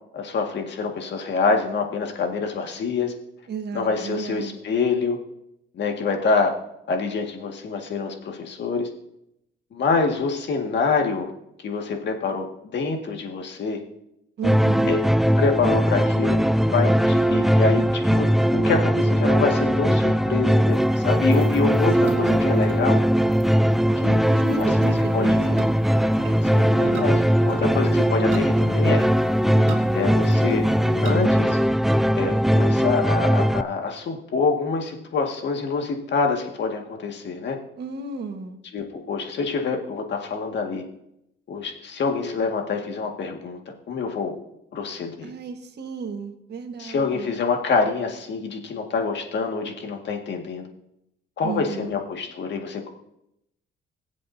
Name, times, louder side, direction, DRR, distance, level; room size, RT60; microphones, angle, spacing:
voice 1, 0.1-3.1 3.7-5.2 5.7-6.5 6.9-8.9 9.7-11.3 11.6-13.8 14.8-15.0 15.4-16.4 16.7-23.0 24.0-24.2 24.6-24.7 25.1-25.4 26.4-29.0 29.9-30.6 31.0-31.6 32.2-37.6 38.7-40.8 41.5-43.6 43.9-44.3 44.7-45.3 46.8-50.7 51.4-52.9, left 4 dB, 60° left, 3 dB, 1.9 m, -26 dB
voice 2, 3.5-4.6 14.4-14.9 22.0-22.4 24.3-25.6 37.8-38.6 45.2-47.2 51.4-51.9, right 4 dB, 55° right, 4 dB, 1.5 m, -33 dB
sound 1, 14.4-33.6, equal, ahead, 0.4 m, -20 dB
sound 2, 20.7-31.3, right 5 dB, 85° right, 1.8 m, -38 dB
22.0 x 7.6 x 2.7 m, 0.82 s
cardioid pair, 90°, 20 cm